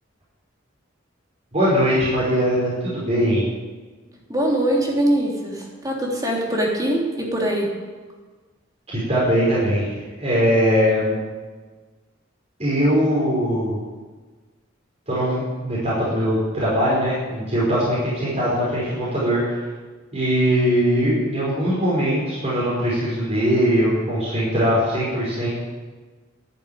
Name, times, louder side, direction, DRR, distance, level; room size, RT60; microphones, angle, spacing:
voice 1, 1.5-3.5 9.1-9.9 10.2-11.2 12.6-13.8 15.1-19.4 20.1-25.5, equal, 35° right, -8 dB, 5.3 m, -21 dB
voice 2, 4.3-7.7, right 1 dB, 20° right, -2 dB, 3.1 m, -22 dB
11.5 x 10.5 x 9.1 m, 1.4 s
head